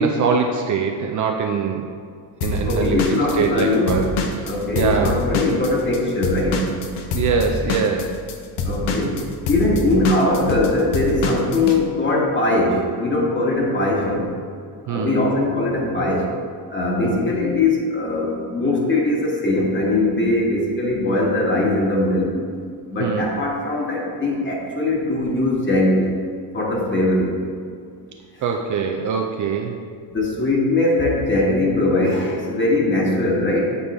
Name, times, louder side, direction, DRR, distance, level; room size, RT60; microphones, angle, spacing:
voice 1, 0.0-1.8 2.4-4.1 4.4-5.2 7.1-8.1 14.9-15.2 17.0-17.2 23.0-23.3 28.4-29.8, right 5 dB, 45° right, 2 dB, 0.5 m, -23 dB
Drum kit / Drum, 2.4-6.0 6.2-11.8, left 3 dB, 65° left, 0.8 m, -25 dB
voice 2, 2.6-4.0 4.5-6.7 8.6-9.2 9.5-14.3 14.9-16.3 16.7-22.3 22.9-26.2 26.5-27.4 30.1-33.8, left 2 dB, 25° left, -2 dB, 1.4 m, -20 dB
8.2 x 3.7 x 3.5 m, 2.1 s
cardioid pair, 100°, 45 cm